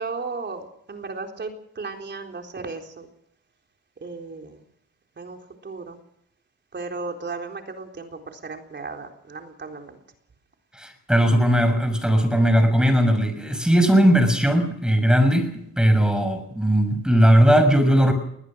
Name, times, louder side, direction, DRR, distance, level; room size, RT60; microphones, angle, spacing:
voice 1, 0.0-3.1 4.0-4.6 5.2-6.0 6.7-10.0, right 4 dB, 35° right, 3 dB, 4.0 m, -35 dB
voice 2, 10.7-15.5 15.8-18.1, equal, 5° right, 9 dB, 6.3 m, -18 dB
20.5 x 20.0 x 6.4 m, 0.73 s
cardioid pair, 90°, 30 cm